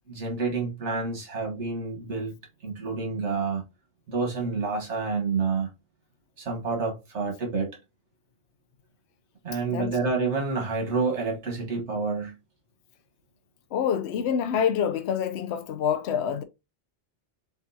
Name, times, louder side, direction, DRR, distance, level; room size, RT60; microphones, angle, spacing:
voice 1, 0.1-2.3 2.6-3.6 4.1-5.7 6.4-7.7 9.4-12.3, right 4 dB, 80° right, 1.6 m, -28 dB
voice 2, 13.7-16.4, left 8 dB, 75° left, 0.9 m, -26 dB
7.3 x 2.5 x 2.7 m
omnidirectional pair, 1.2 m